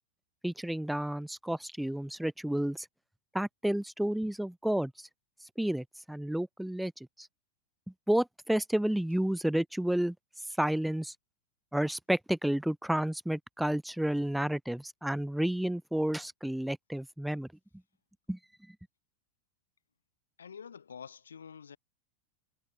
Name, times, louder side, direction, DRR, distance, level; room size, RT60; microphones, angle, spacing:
voice 1, 0.4-2.9 3.3-5.1 5.6-6.9 7.2-7.3 8.1-10.1 10.6-11.1 11.7-17.5 18.3-18.4, right 1 dB, ahead, 0.6 m, -31 dB
voice 2, 20.4-21.8, left 7 dB, 85° left, 5.6 m, -47 dB
hypercardioid pair, 95°, 0 cm